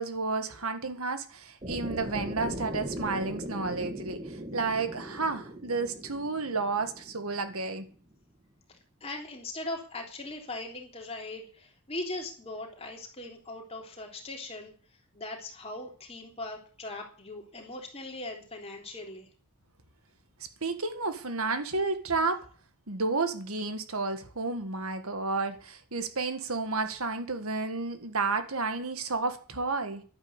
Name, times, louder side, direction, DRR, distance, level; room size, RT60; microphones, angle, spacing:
voice 1, 0.0-7.9 20.6-22.5 22.9-30.0, right 3 dB, 75° right, 1.9 m, -31 dB
sound 1, 1.6-7.7, right 1 dB, 25° right, 1.9 m, -39 dB
voice 2, 9.0-14.7 15.1-19.3, left 2 dB, 25° left, 3.5 m, -40 dB
12.0 x 9.7 x 8.2 m
head